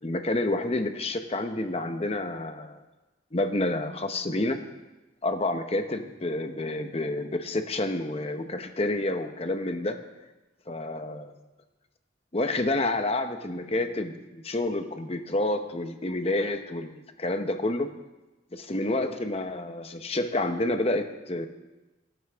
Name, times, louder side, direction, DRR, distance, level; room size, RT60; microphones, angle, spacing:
voice 1, 0.0-2.8 3.3-4.6 5.2-10.0 10.7-11.3 12.3-17.9 18.5-21.5, left 2 dB, 30° left, 7 dB, 0.9 m, -29 dB
17.0 x 13.0 x 3.6 m, 1.1 s
head